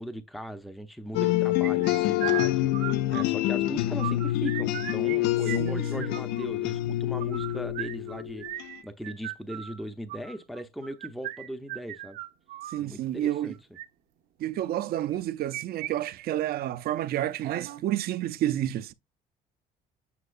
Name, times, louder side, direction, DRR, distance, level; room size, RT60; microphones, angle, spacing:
voice 1, 0.0-12.2 12.8-13.6, equal, ahead, 0.6 m, -39 dB
sound 1, 1.1-8.7, left 16 dB, 90° left, 0.5 m, -27 dB
sound 2, 1.6-3.5 3.9-5.2 5.4-6.5 7.1-12.8 13.5-13.8 15.1-15.9 16.2-16.3 16.7-16.8 17.4-17.8, right 13 dB, 90° right, 1.0 m, -37 dB
voice 2, 5.6-6.1 12.7-13.6 14.4-18.9, right 12 dB, 65° right, 0.5 m, -30 dB
8.3 x 4.7 x 2.5 m
cardioid pair, 110°, 17 cm